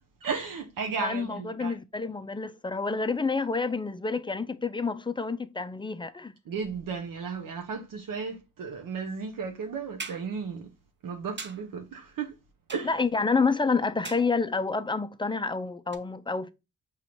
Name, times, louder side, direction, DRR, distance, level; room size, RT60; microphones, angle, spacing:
voice 1, 0.2-1.8 6.5-10.7 11.0-12.4 12.7-13.0, right 5 dB, 60° right, 0.8 m, -34 dB
voice 2, 1.0-6.4 12.8-16.5, left 4 dB, 15° left, 0.4 m, -28 dB
sound 1, 10.0-10.3 11.4-11.7 12.7-13.1 14.0-14.5 15.9-16.0, right 4 dB, 30° right, 0.8 m, -41 dB
4.8 x 3.2 x 3.0 m
supercardioid pair, 40°, 37 cm